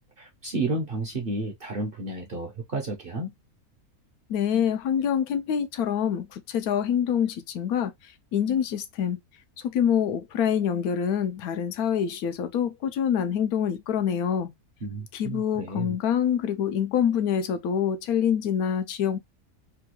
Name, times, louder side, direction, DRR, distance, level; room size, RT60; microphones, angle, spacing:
voice 1, 0.2-3.3 14.8-16.0, right 2 dB, 50° right, 0.7 m, -32 dB
voice 2, 4.3-9.2 9.6-14.5 15.1-19.2, left 8 dB, 90° left, 1.1 m, -26 dB
3.4 x 2.3 x 2.9 m
omnidirectional pair, 1.5 m